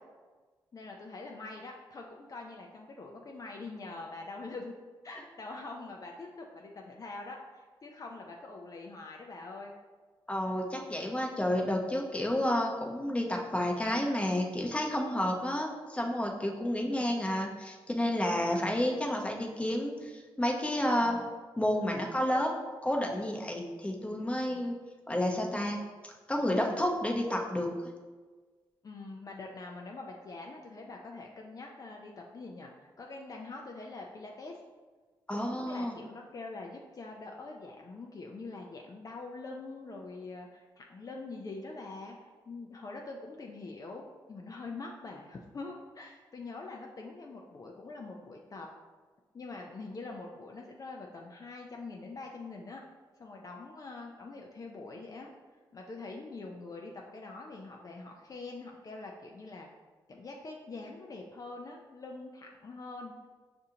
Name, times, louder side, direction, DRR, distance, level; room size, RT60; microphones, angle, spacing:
voice 1, 0.7-4.7 5.0-9.7 16.8-17.2 28.8-34.6 35.3-48.7 49.3-52.8 53.2-55.3 55.7-59.7 60.1-63.1, left 3 dB, 40° left, 0 dB, 0.4 m, -44 dB
voice 2, 10.3-21.2 21.6-22.5 22.8-24.7 25.1-25.8 26.0-27.7 35.3-35.9, left 1 dB, 15° left, 1 dB, 0.7 m, -30 dB
5.4 x 2.5 x 2.8 m, 1.4 s
supercardioid pair, 55°, 9 cm